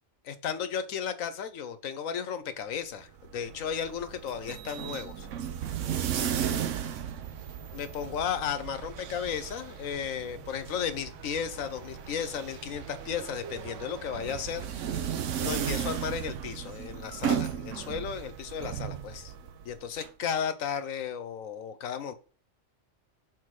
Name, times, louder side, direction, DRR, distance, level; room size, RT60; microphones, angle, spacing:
voice 1, 0.2-5.3 7.7-15.0 15.4-19.3 19.6-22.1, left 8 dB, 90° left, 11 dB, 1.2 m, -34 dB
sound 1, 3.0-20.1, right 9 dB, 70° right, 1.0 m, -35 dB
sound 2, 6.3-14.7, left 1 dB, 10° left, 1.5 m, -55 dB
6.1 x 4.5 x 4.8 m, 0.37 s
omnidirectional pair, 1.3 m